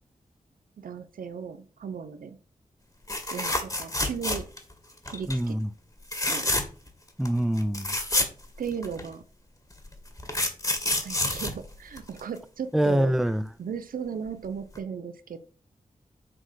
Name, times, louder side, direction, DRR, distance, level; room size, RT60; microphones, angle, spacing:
voice 1, 0.8-2.4 3.3-4.5 5.1-5.6 6.3-6.5 8.6-9.2 11.0-13.1 13.6-15.4, right 7 dB, 85° right, 0.8 m, -36 dB
sound 1, 3.1-4.7 5.1-5.4 6.0-6.9 7.3-7.4 7.6-9.1 9.8-12.4 14.3-14.5 14.8-14.9, left 1 dB, 25° left, 2.3 m, -28 dB
voice 2, 5.3-5.7 7.2-8.0 12.7-13.5, right 1 dB, 5° right, 0.6 m, -25 dB
7.7 x 4.1 x 6.3 m
cardioid pair, 55°, 14 cm